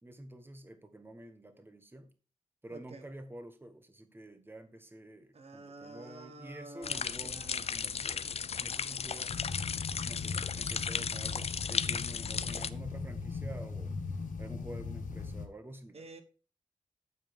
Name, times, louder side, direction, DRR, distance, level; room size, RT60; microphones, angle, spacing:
voice 1, 0.0-2.1 2.6-9.5 10.0-13.9 14.4-16.0, right 1 dB, 15° right, 1.1 m, -49 dB
voice 2, 2.7-3.1 5.3-8.1 15.9-16.2, right 2 dB, 50° right, 1.0 m, -50 dB
sound 1, 6.8-12.7, left 6 dB, 50° left, 0.5 m, -35 dB
sound 2, 9.3-15.5, left 4 dB, 75° left, 1.2 m, -39 dB
9.6 x 7.3 x 3.5 m
wide cardioid pair, 110°, 14 cm